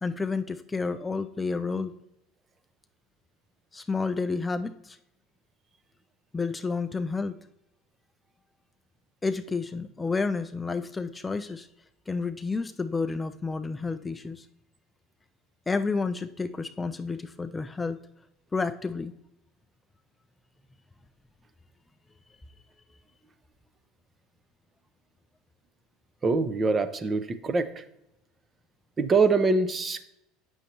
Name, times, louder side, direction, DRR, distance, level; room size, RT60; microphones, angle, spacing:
voice 1, 0.0-1.9 3.7-5.0 6.3-7.4 9.2-11.7 12.1-14.5 15.7-18.0 18.5-19.1, left 4 dB, 15° left, 9 dB, 0.3 m, -30 dB
voice 2, 26.2-27.8 29.0-30.1, right 4 dB, 25° right, 11 dB, 0.6 m, -24 dB
7.9 x 6.3 x 2.8 m, 0.83 s
supercardioid pair, 110°, 0 cm